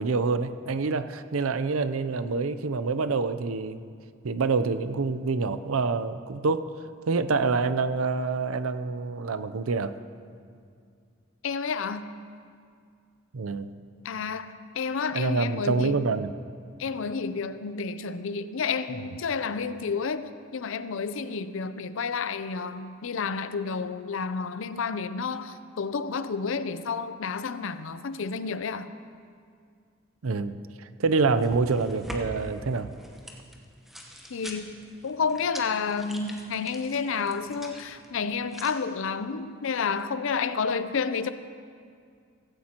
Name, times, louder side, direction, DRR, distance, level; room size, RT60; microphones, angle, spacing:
voice 1, 0.0-3.8 4.2-6.6 7.1-10.0 13.3-13.7 15.1-16.3 30.2-32.9, right 4 dB, 80° right, 12 dB, 0.6 m, -26 dB
voice 2, 11.4-12.1 14.0-16.0 16.8-28.9 34.3-41.3, left 5 dB, 65° left, 12 dB, 0.5 m, -30 dB
sound 1, 31.0-38.7, equal, ahead, 1.1 m, -44 dB
16.0 x 16.0 x 2.9 m, 2.2 s
head